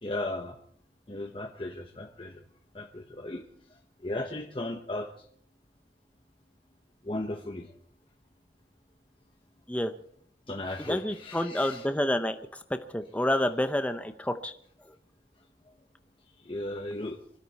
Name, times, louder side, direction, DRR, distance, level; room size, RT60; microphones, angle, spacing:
voice 1, 0.0-0.6 1.1-2.4 2.7-3.4 4.0-5.1 7.0-7.7 10.5-11.8 16.4-17.2, left 1 dB, 30° left, 3 dB, 1.0 m, -36 dB
voice 2, 10.8-12.6 12.9-14.5 14.9-15.0, left 1 dB, 10° left, 8 dB, 0.7 m, -29 dB
24.5 x 13.0 x 4.2 m, 0.63 s
head